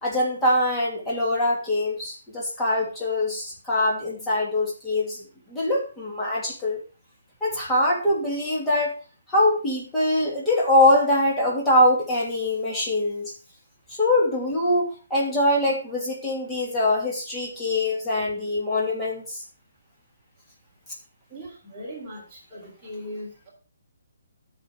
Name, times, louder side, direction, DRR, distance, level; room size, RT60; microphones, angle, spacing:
voice 1, 0.0-5.2 5.5-6.8 7.4-8.9 9.3-13.3 14.0-19.4, left 1 dB, 10° left, -6 dB, 2.9 m, -23 dB
voice 2, 21.3-23.5, equal, 5° right, -10 dB, 3.3 m, -39 dB
11.5 x 5.5 x 4.9 m, 0.36 s
hypercardioid pair, 160°, 0 cm